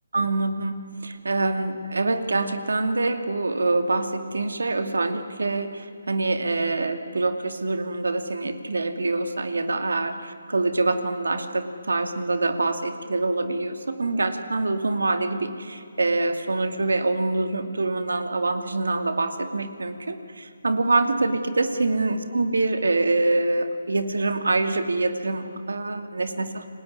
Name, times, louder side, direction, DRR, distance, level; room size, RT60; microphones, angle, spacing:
voice 1, 0.1-26.7, right 2 dB, 90° right, 8 dB, 2.5 m, -25 dB
29.0 x 20.0 x 9.8 m, 2.4 s
hypercardioid pair, 160°, 0 cm